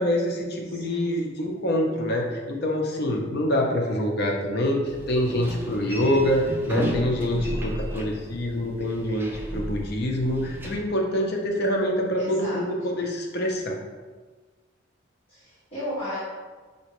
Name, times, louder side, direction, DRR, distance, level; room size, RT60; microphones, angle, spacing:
voice 1, 0.0-13.8, left 1 dB, 55° left, 1 dB, 0.7 m, -25 dB
voice 2, 0.6-1.2 12.2-13.0 15.3-16.2, equal, 30° left, -12 dB, 1.3 m, -35 dB
sound 1, 4.8-10.8, right 1 dB, 10° right, 0.4 m, -34 dB
5.4 x 2.9 x 3.0 m, 1.4 s
head